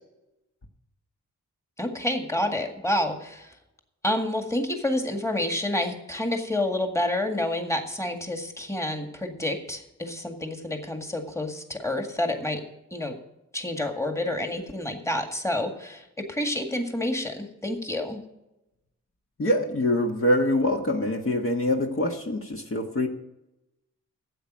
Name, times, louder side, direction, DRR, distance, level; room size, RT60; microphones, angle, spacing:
voice 1, 1.8-3.5 4.0-12.6 12.9-13.2 13.5-18.2, left 1 dB, 10° left, 4 dB, 1.9 m, -29 dB
voice 2, 19.4-23.1, left 1 dB, 45° left, 1 dB, 1.5 m, -24 dB
12.5 x 8.6 x 6.3 m, 0.93 s
cardioid pair, 80°, 31 cm